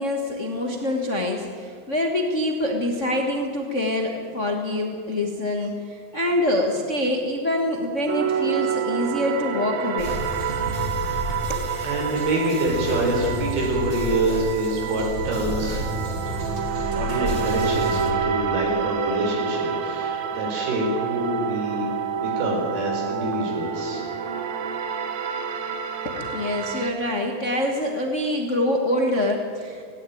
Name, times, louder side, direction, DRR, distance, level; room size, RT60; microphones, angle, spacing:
voice 1, 0.0-10.2 11.5-11.7 26.0-29.8, left 1 dB, 75° left, 2 dB, 0.7 m, -25 dB
sound 1, 8.1-26.9, right 7 dB, 60° right, 2.1 m, -28 dB
sound 2, 10.0-18.1, equal, 20° right, 1.9 m, -31 dB
voice 2, 11.8-15.8 17.0-21.9 22.1-24.1, right 1 dB, 90° right, 0 dB, 6.7 m, -26 dB
18.0 x 17.5 x 9.2 m, 2.1 s
omnidirectional pair, 4.3 m